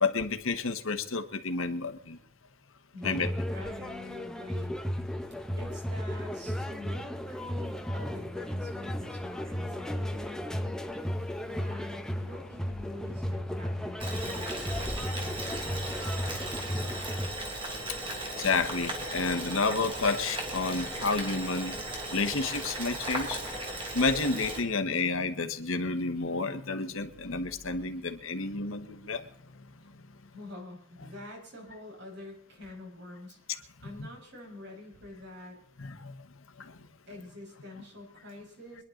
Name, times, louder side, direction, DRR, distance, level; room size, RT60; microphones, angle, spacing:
voice 1, 0.0-2.2 3.0-3.3 18.4-21.8 22.1-23.4 23.9-29.3 30.0-30.1 35.8-36.2 36.6-36.8, left 4 dB, 75° left, 7 dB, 1.4 m, -30 dB
voice 2, 2.9-4.8 5.6-10.8 11.5-15.8 30.3-33.6 33.8-35.6 37.1-38.8, left 1 dB, 55° right, 0 dB, 5.4 m, -46 dB
sound 1, 3.0-17.3, equal, 5° left, 0.8 m, -35 dB
Boiling, 14.0-24.6, right 1 dB, 25° right, 3.4 m, -36 dB
25.0 x 11.0 x 3.9 m, 0.65 s
head